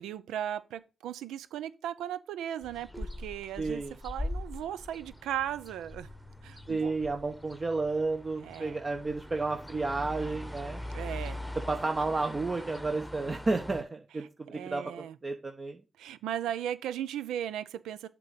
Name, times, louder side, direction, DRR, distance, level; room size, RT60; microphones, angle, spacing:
voice 1, 0.0-6.1 6.4-6.9 8.4-8.8 10.9-11.4 14.5-15.2 16.0-18.1, right 10 dB, 85° right, 0.5 m, -37 dB
sound 1, 2.6-13.8, left 1 dB, 5° left, 1.1 m, -42 dB
voice 2, 3.6-3.9 6.7-10.8 11.7-15.8, right 3 dB, 40° right, 1.0 m, -32 dB
7.6 x 3.8 x 5.7 m
supercardioid pair, 45°, 0 cm